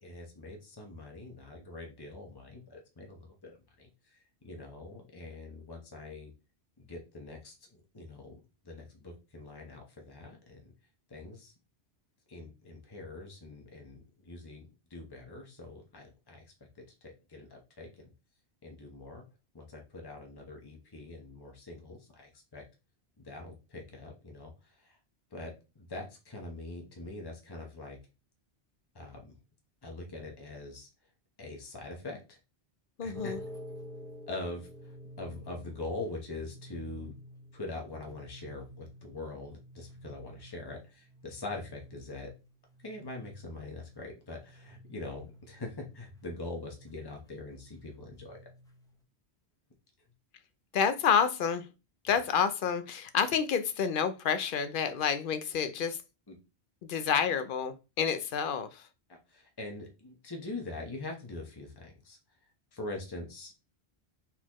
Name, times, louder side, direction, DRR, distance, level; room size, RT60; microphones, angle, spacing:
voice 1, 0.0-6.3 6.9-7.6 7.9-10.6 11.1-11.5 12.3-16.4 17.0-18.1 18.6-19.2 19.5-22.6 23.2-24.5 24.8-25.0 25.3-28.0 28.9-29.3 29.8-30.9 31.4-32.4 33.0-33.3 34.3-37.2 37.5-42.3 42.8-48.5 56.3-56.4 58.0-58.1 59.1-62.2 62.7-63.7, left 2 dB, 25° left, 1.0 m, -43 dB
voice 2, 33.0-33.4 50.7-51.6 52.0-56.0 56.8-58.8, left 7 dB, 60° left, 0.7 m, -29 dB
sound 1, 33.1-49.0, equal, 5° left, 0.5 m, -50 dB
4.2 x 4.1 x 3.0 m
omnidirectional pair, 1.1 m